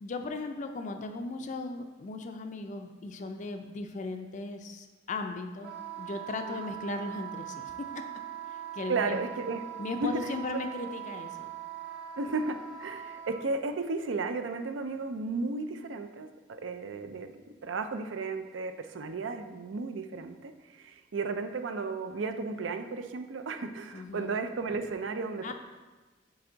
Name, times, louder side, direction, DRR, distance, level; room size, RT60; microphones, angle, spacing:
voice 1, 0.0-5.7 6.0-8.0 8.7-9.2 9.8-11.5 23.9-24.3 25.4-25.5, left 3 dB, 40° left, 5 dB, 0.4 m, -37 dB
Wind instrument woodwind instrument, 5.6-13.4, right 11 dB, 60° right, 1.1 m, -41 dB
voice 2, 8.9-9.6 10.0-10.6 12.2-25.5, right 3 dB, 80° right, 7 dB, 0.5 m, -34 dB
7.9 x 3.4 x 3.9 m, 1.3 s
head